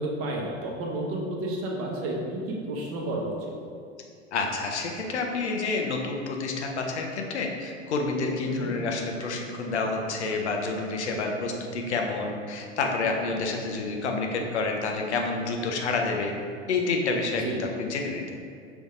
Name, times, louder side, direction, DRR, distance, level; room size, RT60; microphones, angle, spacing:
voice 1, 0.0-3.5 8.4-8.7 17.4-17.6, right 1 dB, 40° right, -1 dB, 0.9 m, -31 dB
voice 2, 4.3-16.3 16.7-18.3, left 3 dB, 75° left, 2 dB, 0.7 m, -29 dB
5.3 x 3.4 x 2.6 m, 2.3 s
figure-of-eight pair, 80°, 34 cm